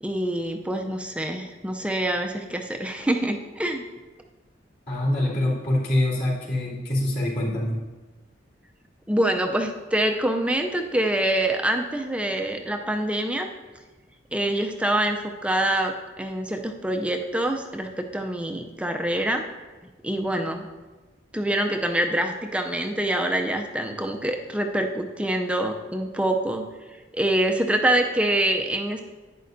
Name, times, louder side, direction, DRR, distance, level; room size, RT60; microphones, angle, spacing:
voice 1, 0.0-3.9 9.1-13.5 14.3-19.4 20.0-20.6 21.3-26.7 27.1-29.0, right 1 dB, 5° right, 3 dB, 0.5 m, -25 dB
voice 2, 4.9-7.8, left 1 dB, 55° left, -8 dB, 2.9 m, -24 dB
11.0 x 9.2 x 2.6 m, 1.3 s
head